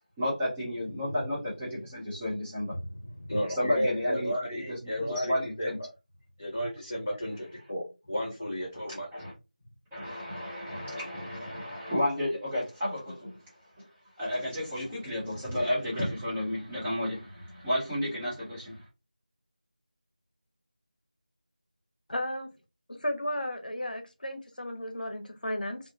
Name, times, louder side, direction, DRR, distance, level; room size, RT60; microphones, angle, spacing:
voice 1, 0.2-2.7 3.5-5.8 8.9-9.3 9.9-13.4 13.8-13.9 14.2-18.8, left 1 dB, 5° right, -9 dB, 0.5 m, -32 dB
voice 2, 0.8-1.3 2.7-5.9 6.4-9.1, equal, 15° left, -12 dB, 0.8 m, -34 dB
voice 3, 22.1-22.5 22.9-25.8, left 1 dB, 70° left, 5 dB, 0.7 m, -34 dB
2.8 x 2.0 x 2.6 m, 0.26 s
figure-of-eight pair, 170°, 5 cm